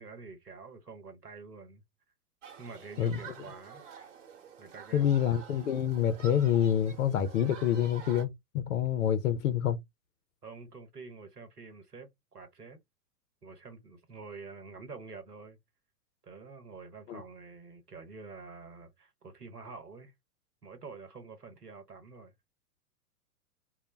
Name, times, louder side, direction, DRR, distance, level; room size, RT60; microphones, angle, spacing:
voice 1, 0.0-1.8 2.6-3.8 4.6-5.1 10.4-12.8 13.4-15.6 16.2-20.1 20.6-22.3, right 4 dB, 85° right, 0.9 m, -47 dB
Human group actions, 2.4-8.2, right 7 dB, 55° right, 1.1 m, -49 dB
voice 2, 4.9-9.8 17.1-17.2, left 9 dB, 60° left, 0.5 m, -27 dB
2.1 x 2.0 x 3.1 m
figure-of-eight pair, 105°, 46 cm